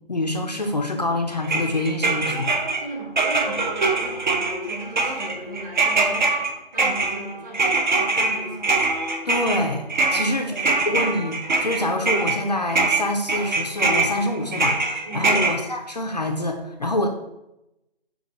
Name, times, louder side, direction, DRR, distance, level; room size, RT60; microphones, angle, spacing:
voice 1, 0.1-2.5 9.3-9.8 10.1-10.5 10.9-17.1, left 1 dB, 45° left, 3 dB, 0.4 m, -26 dB
sound 1, 1.4-2.8 3.2-12.4 12.7-15.6, right 3 dB, 50° right, 0.5 m, -23 dB
voice 2, 2.6-8.8 10.0-10.8 15.0-15.4, right 1 dB, 20° right, -4 dB, 0.8 m, -37 dB
5.7 x 2.3 x 4.0 m, 0.90 s
figure-of-eight pair, 150°, 31 cm